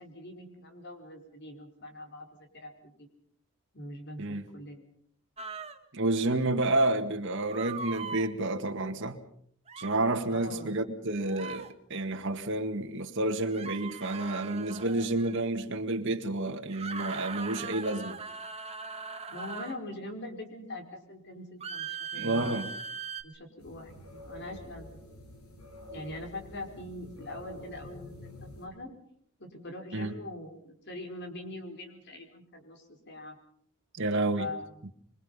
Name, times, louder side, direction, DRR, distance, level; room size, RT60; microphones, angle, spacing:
voice 1, 0.0-3.1 3.7-4.8 10.3-10.8 19.3-22.6 23.2-25.0 25.9-28.9 29.4-33.4 34.4-34.7, left 1 dB, 50° left, 4.9 m, -43 dB
sound 1, 5.4-5.8 7.5-8.3 9.7-10.0 11.3-11.7 13.5-15.4 16.7-19.8 21.6-23.2, right 5 dB, 30° right, 1.6 m, -40 dB
voice 2, 5.9-9.2 9.8-18.2 22.1-22.7 29.9-30.1 34.0-34.5, right 2 dB, 60° right, 2.0 m, -30 dB
sound 2, 23.6-28.7, left 1 dB, 90° left, 6.2 m, -47 dB
26.5 x 24.0 x 5.6 m
head